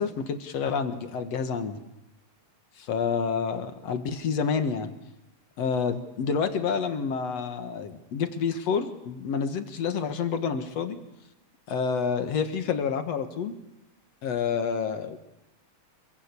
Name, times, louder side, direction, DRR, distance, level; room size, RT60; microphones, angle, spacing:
voice 1, 0.0-1.8 2.8-4.9 5.6-11.0 11.7-13.5 14.2-15.2, left 6 dB, 60° left, 8 dB, 2.6 m, -28 dB
27.0 x 22.0 x 8.4 m, 0.87 s
omnidirectional pair, 3.5 m